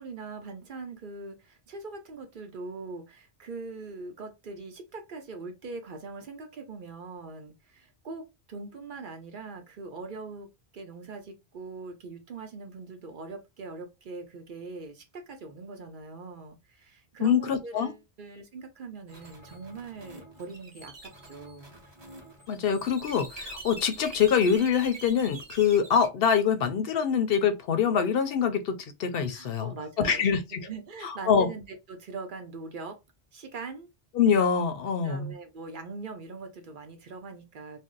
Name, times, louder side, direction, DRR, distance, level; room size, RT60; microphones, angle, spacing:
voice 1, 0.0-21.7 29.3-33.0 33.3-33.9 35.0-37.8, right 3 dB, 55° right, 0.8 m, -42 dB
voice 2, 17.2-17.9 22.5-30.6 31.0-31.5 34.1-35.3, left 7 dB, 70° left, 0.7 m, -25 dB
sound 1, 19.1-26.1, right 1 dB, 25° right, 0.9 m, -45 dB
2.6 x 2.0 x 3.7 m
omnidirectional pair, 1.1 m